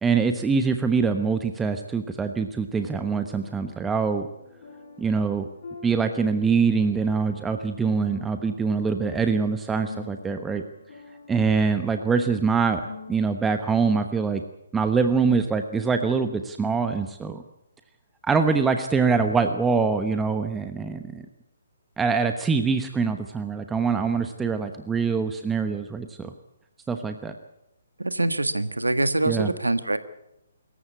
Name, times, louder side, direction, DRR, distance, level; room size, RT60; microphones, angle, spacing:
voice 1, 0.0-4.3 5.0-5.5 5.8-10.6 11.3-12.8 13.1-14.4 14.7-17.4 18.2-21.2 22.0-26.3 26.9-27.3 29.2-29.5, right 5 dB, 10° right, 7 dB, 1.1 m, -24 dB
sound 1, 2.8-13.7, left 3 dB, 50° left, 6.9 m, -46 dB
voice 2, 28.0-30.0, right 2 dB, 80° right, 11 dB, 1.6 m, -24 dB
25.5 x 14.5 x 8.4 m, 0.87 s
figure-of-eight pair, 135°, 0 cm